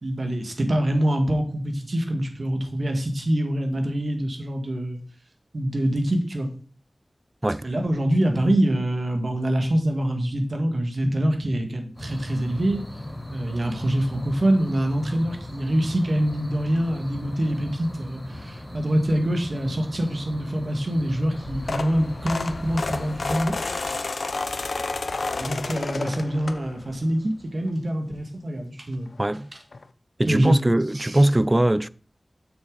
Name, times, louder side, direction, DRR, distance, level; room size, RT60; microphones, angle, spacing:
voice 1, 0.0-5.0 5.5-6.5 7.6-12.8 13.3-24.1 25.3-29.1 30.3-30.5 30.9-31.2, right 1 dB, 60° right, 1.7 m, -25 dB
sound 1, 11.9-23.5, left 1 dB, 25° left, 2.8 m, -38 dB
sound 2, 21.3-27.0 27.4-27.7 28.9-29.0 29.3-29.4 29.7-29.8, left 3 dB, 80° left, 0.6 m, -30 dB
voice 2, 29.2-29.5 30.2-31.9, right 1 dB, 25° right, 0.4 m, -21 dB
7.2 x 6.4 x 3.9 m
wide cardioid pair, 65°, 0 cm